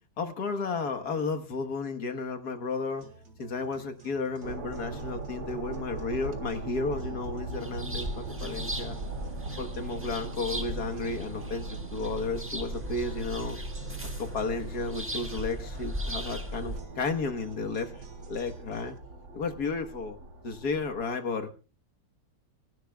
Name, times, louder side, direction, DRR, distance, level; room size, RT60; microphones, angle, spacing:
voice 1, 0.2-3.0 3.4-9.0 9.6-13.6 14.2-17.9 18.3-18.9 19.3-20.2 20.4-21.5, left 3 dB, 60° left, 5 dB, 1.8 m, -33 dB
sound 1, 3.0-19.0, right 3 dB, 65° right, 2.6 m, -51 dB
sound 2, 4.4-21.1, right 2 dB, 90° right, 3.2 m, -40 dB
sound 3, 7.3-16.8, equal, 10° right, 1.3 m, -38 dB
27.5 x 11.5 x 2.3 m, 0.32 s
omnidirectional pair, 2.0 m